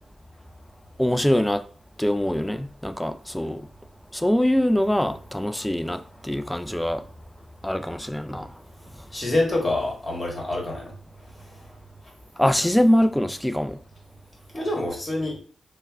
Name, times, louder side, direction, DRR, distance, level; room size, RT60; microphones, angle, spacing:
voice 1, 1.0-1.6 2.0-3.7 4.1-7.0 7.6-8.5 12.4-13.8, left 1 dB, 5° left, 0.4 m, -23 dB
voice 2, 9.1-10.9 14.5-15.4, left 2 dB, 35° left, 1.6 m, -26 dB
3.2 x 2.2 x 3.5 m
supercardioid pair, 45°, 0 cm